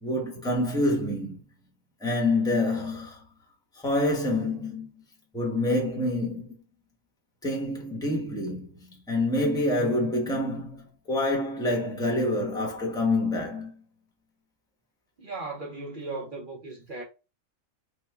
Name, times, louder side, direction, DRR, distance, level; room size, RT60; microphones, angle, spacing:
voice 1, 0.0-1.4 2.0-3.2 3.8-5.0 5.3-6.5 7.4-13.8, left 1 dB, 5° left, 0.6 m, -27 dB
voice 2, 15.2-17.0, right 3 dB, 50° right, 0.7 m, -37 dB
3.7 x 2.0 x 3.2 m
omnidirectional pair, 1.4 m